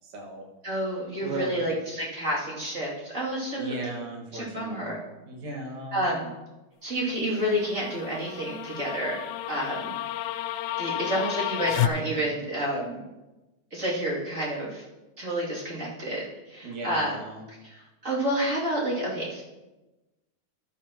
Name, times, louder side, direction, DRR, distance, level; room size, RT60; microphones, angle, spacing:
voice 1, 0.0-0.5 1.2-1.6 3.6-4.9 5.3-6.1 16.6-17.5, right 2 dB, 70° right, -1 dB, 3.1 m, -36 dB
voice 2, 0.6-3.7 4.3-5.0 5.9-6.3 6.8-9.2 9.5-10.0 10.8-13.0 13.7-14.9 15.2-17.1 17.6-19.4, right 1 dB, 25° right, -6 dB, 2.7 m, -29 dB
sound 1, 7.4-11.9, left 13 dB, 80° left, 2.0 m, -31 dB
13.5 x 11.0 x 3.0 m, 1.1 s
omnidirectional pair, 3.5 m